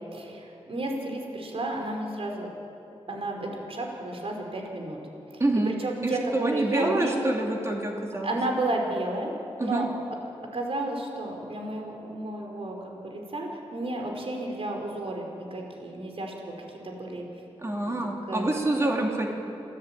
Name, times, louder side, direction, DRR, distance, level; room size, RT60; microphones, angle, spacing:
voice 1, 0.1-2.5 3.1-5.0 5.3-7.3 8.2-9.3 9.6-9.9 10.5-16.5 16.8-17.2 17.9-18.0 18.3-18.5, right 2 dB, 60° right, 1 dB, 4.9 m, -32 dB
voice 2, 5.4-5.7 6.0-8.4 9.6-9.8 17.6-19.3, right 2 dB, 25° right, 0 dB, 2.7 m, -27 dB
27.5 x 17.5 x 9.1 m, 2.8 s
wide cardioid pair, 120°, 11 cm